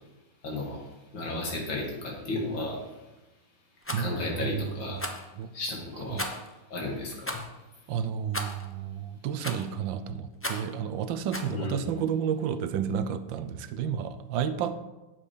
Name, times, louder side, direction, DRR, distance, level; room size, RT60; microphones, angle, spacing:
voice 1, 0.4-3.0 4.0-5.1 5.5-6.4 6.7-7.4 11.5-11.7, left 2 dB, 75° left, -1 dB, 3.1 m, -34 dB
Rattle, 3.8-4.0 5.0-5.3 6.2-6.5 7.2-7.5 8.3-8.6 9.4-9.7 10.4-10.7 11.3-11.5, left 1 dB, 20° left, 0.3 m, -35 dB
voice 2, 3.9-5.5 6.1-6.4 7.9-14.8, right 8 dB, 80° right, 12 dB, 1.4 m, -32 dB
9.6 x 7.2 x 5.0 m, 1.1 s
omnidirectional pair, 2.1 m